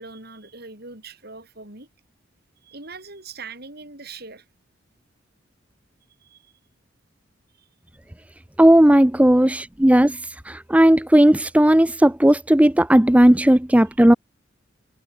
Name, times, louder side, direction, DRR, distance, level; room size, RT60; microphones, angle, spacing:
voice 1, 0.0-1.9 2.6-4.5 6.2-6.5 7.6-7.7 13.9-14.0, right 4 dB, 55° right, 7.7 m, -41 dB
voice 2, 8.6-10.2 10.5-14.1, right 1 dB, 5° right, 0.6 m, -15 dB
head